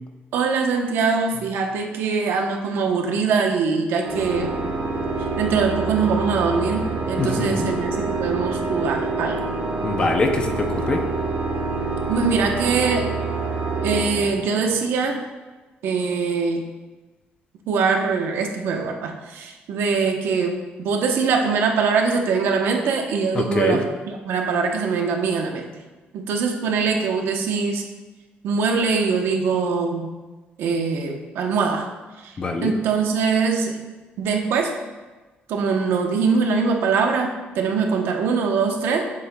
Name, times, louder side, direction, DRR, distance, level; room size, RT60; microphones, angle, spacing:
voice 1, 0.3-4.5 5.4-9.4 12.1-13.1 13.8-15.2 15.8-16.6 17.7-25.7 26.1-27.8 28.4-30.1 30.6-31.9 32.2-32.3 32.6-33.8 34.2-34.7 35.5-39.0, right 5 dB, 80° right, 3 dB, 0.9 m, -22 dB
Organ, 4.0-14.9, right 3 dB, 45° right, 1.3 m, -26 dB
voice 2, 7.2-7.7 9.8-11.0 23.4-23.8 32.4-32.7, left 3 dB, 25° left, 5 dB, 0.6 m, -23 dB
10.5 x 7.3 x 2.3 m, 1.2 s
cardioid pair, 180°, 4 cm